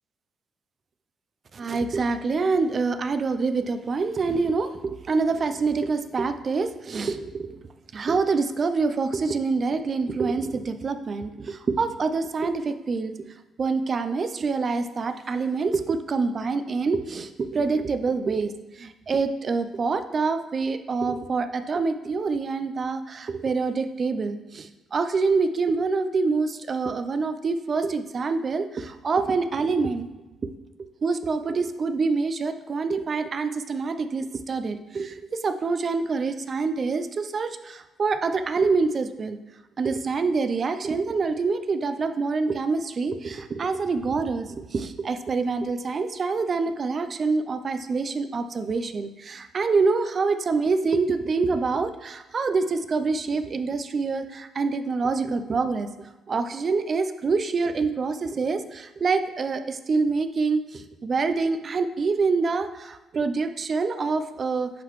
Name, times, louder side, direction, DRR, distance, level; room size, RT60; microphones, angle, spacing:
voice 1, 1.5-7.6 7.9-13.1 13.6-30.1 31.0-39.4 39.8-55.9 56.3-64.7, right 4 dB, 45° right, 10 dB, 0.5 m, -26 dB
10.5 x 3.9 x 3.1 m, 1.1 s
cardioid pair, 90°, 0 cm